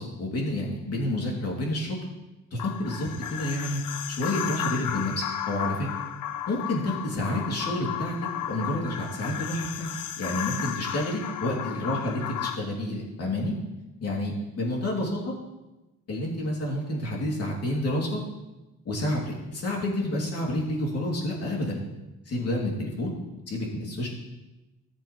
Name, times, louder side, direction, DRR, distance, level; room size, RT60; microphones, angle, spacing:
voice 1, 0.0-2.0 2.5-3.8 4.1-5.9 6.5-8.1 8.4-9.9 10.2-13.5 14.0-15.3 16.1-18.2 18.8-21.8 22.2-23.1 23.5-24.1, left 1 dB, 55° left, -2 dB, 3.3 m, -29 dB
sound 1, 2.6-12.6, left 10 dB, 80° left, 0.8 m, -34 dB
14.0 x 7.7 x 3.4 m, 1.0 s
cardioid pair, 90°, 30 cm